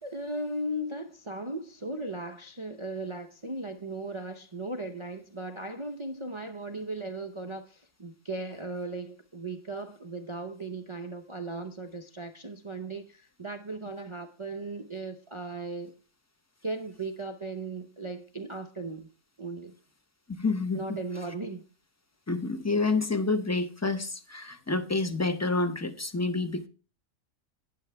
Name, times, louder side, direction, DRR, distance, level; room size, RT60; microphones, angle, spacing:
voice 1, 0.0-15.9 16.6-19.1 19.4-19.7 20.7-21.6, right 2 dB, 30° right, 0.5 m, -37 dB
voice 2, 20.4-21.0 22.3-26.7, left 3 dB, 15° left, 0.5 m, -28 dB
12.0 x 9.2 x 3.4 m
omnidirectional pair, 1.4 m